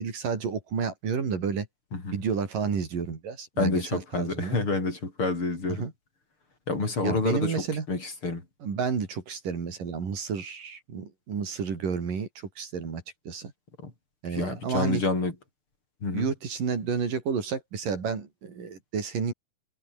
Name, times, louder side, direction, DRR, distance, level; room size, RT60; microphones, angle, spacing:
voice 1, 0.0-1.7 2.1-4.6 5.6-5.9 7.0-7.9 8.6-12.3 12.6-13.5 14.2-15.0 16.1-19.3, right 6 dB, 90° right, 5.9 m, -31 dB
voice 2, 3.6-5.9 6.7-8.4 13.8-13.9 14.3-15.3 16.0-16.3, left 3 dB, 40° left, 5.9 m, -28 dB
omnidirectional pair, 3.7 m